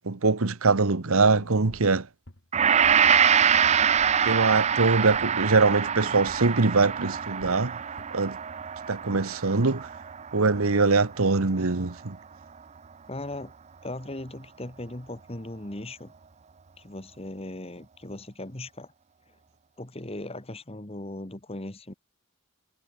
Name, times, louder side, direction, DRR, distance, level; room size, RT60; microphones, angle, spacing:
voice 1, 0.0-2.1 4.2-7.8 8.1-8.4 8.9-9.9 10.3-12.2, right 3 dB, 75° right, 1.2 m, -23 dB
sound 1, 1.1-5.4 5.7-8.0, left 1 dB, 55° left, 2.6 m, -49 dB
Gong, 2.5-11.0 11.3-11.5, right 7 dB, 30° right, 0.4 m, -25 dB
voice 2, 13.1-13.5 13.8-16.1 16.8-18.9 19.8-21.9, left 1 dB, 25° left, 1.6 m, -38 dB
head